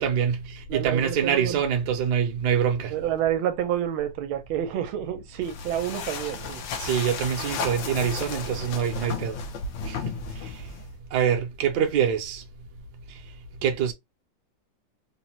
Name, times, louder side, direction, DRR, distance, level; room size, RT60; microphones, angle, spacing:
voice 1, 0.0-2.9 6.8-9.4 9.8-10.6 11.1-12.4 13.1-13.2 13.6-13.9, right 8 dB, 65° right, 1.1 m, -25 dB
voice 2, 0.7-1.6 2.9-6.6, right 11 dB, 90° right, 1.5 m, -28 dB
sound 1, 5.4-11.0, left 4 dB, 70° left, 1.3 m, -34 dB
3.9 x 2.0 x 2.8 m
omnidirectional pair, 2.3 m